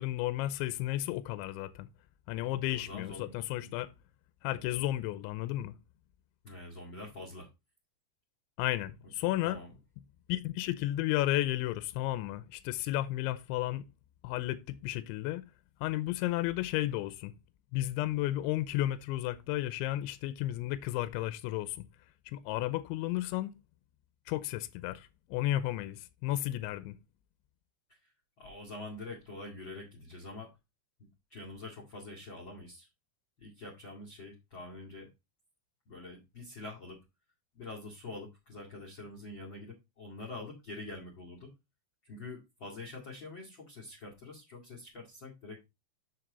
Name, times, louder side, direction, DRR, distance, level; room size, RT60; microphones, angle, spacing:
voice 1, 0.0-1.9 2.3-3.9 4.4-5.7 8.6-9.6 10.3-13.8 14.2-15.4 15.8-17.3 17.7-21.8 22.3-23.5 24.3-27.0, left 15 dB, 85° left, 3.0 m, -33 dB
voice 2, 2.4-3.3 3.6-3.7 6.4-7.5 9.4-9.7 27.9-28.1 28.4-30.5 31.3-32.9 33.4-35.1 35.9-37.0 37.5-41.5 42.0-45.6, left 2 dB, 40° left, 1.8 m, -45 dB
7.7 x 6.6 x 3.9 m
omnidirectional pair, 5.4 m